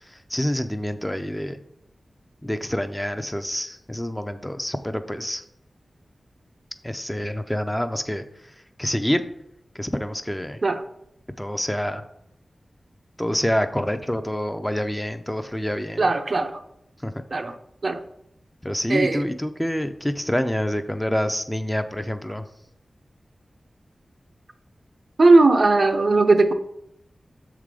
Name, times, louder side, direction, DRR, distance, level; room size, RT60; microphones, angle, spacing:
voice 1, 0.3-1.6 2.4-5.4 6.8-8.2 8.8-9.2 9.7-10.6 11.4-12.0 13.2-16.1 17.0-17.2 18.6-22.5, equal, 10° left, 8 dB, 0.5 m, -27 dB
voice 2, 16.0-16.6 17.3-17.5 17.8-18.0 18.9-19.2 25.2-26.5, right 3 dB, 55° right, 8 dB, 0.5 m, -18 dB
6.5 x 3.7 x 4.8 m, 0.78 s
wide cardioid pair, 70°, 0 cm